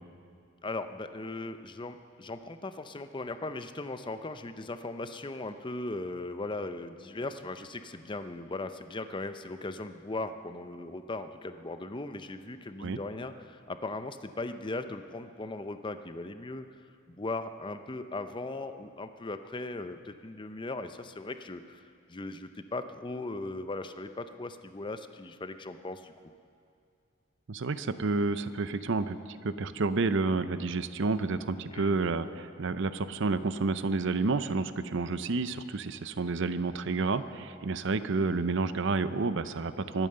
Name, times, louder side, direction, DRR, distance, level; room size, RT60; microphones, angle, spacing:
voice 1, 0.6-16.8 17.1-26.1 31.7-32.1, left 2 dB, 25° left, 10 dB, 0.6 m, -38 dB
voice 2, 27.5-40.1, right 3 dB, 60° right, 13 dB, 0.6 m, -30 dB
24.0 x 9.0 x 6.7 m, 2.4 s
head